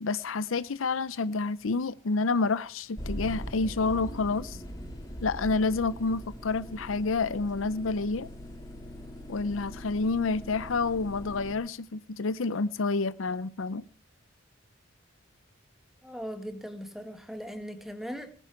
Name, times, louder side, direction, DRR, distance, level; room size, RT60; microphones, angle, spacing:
voice 1, 0.0-4.6 5.2-8.3 9.3-13.8, left 3 dB, 75° left, 0.6 m, -29 dB
sound 1, 2.9-11.5, equal, 20° left, 3.6 m, -41 dB
voice 2, 16.0-18.3, equal, ahead, 1.8 m, -39 dB
19.5 x 9.9 x 5.9 m
head